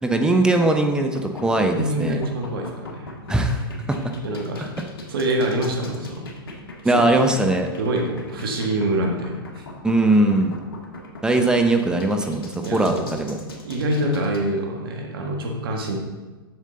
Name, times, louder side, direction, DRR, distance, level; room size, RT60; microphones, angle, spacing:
voice 1, 0.0-2.2 3.3-3.6 3.9-4.0 6.8-7.7 9.8-10.6 11.2-13.4, right 2 dB, 5° right, 4 dB, 0.8 m, -20 dB
sound 1, 1.0-14.4, left 2 dB, 75° left, 1.7 m, -39 dB
voice 2, 1.7-3.1 4.2-4.8 5.1-6.2 6.8-7.1 7.8-9.6 12.6-13.1 13.6-16.0, right 1 dB, 70° right, 1 dB, 1.4 m, -26 dB
7.5 x 7.2 x 3.9 m, 1.3 s
hypercardioid pair, 110°, 13 cm